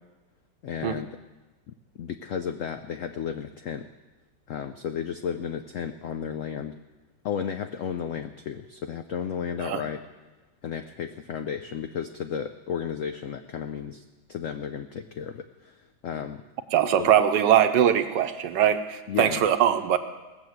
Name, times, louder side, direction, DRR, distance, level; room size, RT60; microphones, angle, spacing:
voice 1, 0.6-1.1 1.7-3.9 4.5-6.8 7.2-10.0 10.6-14.0 14.3-16.4 17.0-17.1 19.1-19.4, left 7 dB, 80° left, 8 dB, 0.7 m, -33 dB
voice 2, 16.7-20.0, right 9 dB, 75° right, 10 dB, 1.3 m, -21 dB
18.0 x 7.0 x 7.9 m, 1.2 s
omnidirectional pair, 2.0 m